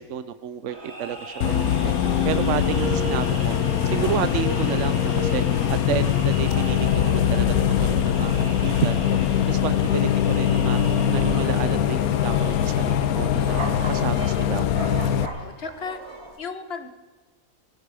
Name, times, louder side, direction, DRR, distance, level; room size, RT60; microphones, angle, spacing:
voice 1, 0.0-1.5 1.8-1.9 2.2-3.6 3.8-9.2 9.5-10.8 11.1-13.6 13.9-14.7, right 10 dB, 60° right, 13 dB, 1.0 m, -30 dB
sound 1, 0.7-16.4, right 2 dB, 45° right, 2.4 m, -40 dB
Bus, 1.4-15.3, left 9 dB, 85° left, 1.2 m, -22 dB
Brass instrument, 1.7-10.0 12.5-16.2, right 2 dB, 20° left, 7.0 m, -39 dB
voice 2, 15.2-16.0 16.4-16.9, left 5 dB, 45° left, 9 dB, 1.2 m, -36 dB
18.5 x 15.0 x 4.9 m, 1.2 s
omnidirectional pair, 1.5 m